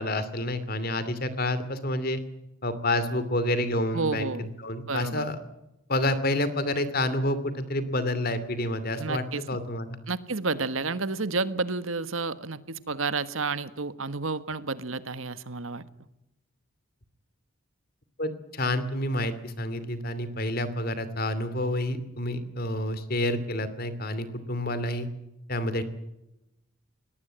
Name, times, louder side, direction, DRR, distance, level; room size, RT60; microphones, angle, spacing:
voice 1, 0.0-2.2 2.6-5.4 5.9-10.0 18.2-25.1 25.5-25.8, left 1 dB, 45° left, 14 dB, 2.6 m, -29 dB
voice 2, 3.9-4.5 4.9-5.3 9.0-9.4 10.1-15.8, right 3 dB, 75° right, 13 dB, 1.5 m, -30 dB
23.5 x 19.0 x 8.9 m, 0.90 s
head